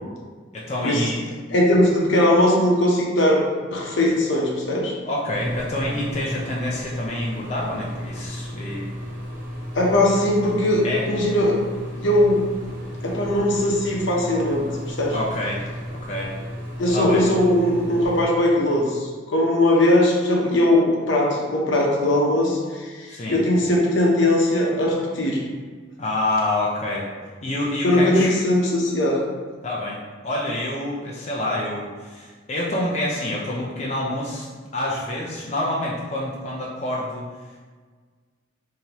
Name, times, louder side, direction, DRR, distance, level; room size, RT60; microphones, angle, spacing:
voice 1, 0.5-1.3 5.0-8.9 10.8-11.1 15.1-15.6 16.0-16.3 16.9-17.2 23.1-23.4 26.0-27.1 27.4-28.3 29.6-30.0 30.2-34.5 34.7-37.6, left 1 dB, 35° left, -4 dB, 0.5 m, -27 dB
voice 2, 1.5-4.9 9.7-11.6 12.0-12.4 13.0-15.2 16.8-25.4 27.8-29.3, left 1 dB, 75° left, -2 dB, 0.8 m, -20 dB
sound 1, 5.3-18.2, equal, 45° right, 0.9 m, -34 dB
5.1 x 2.8 x 2.9 m, 1.5 s
head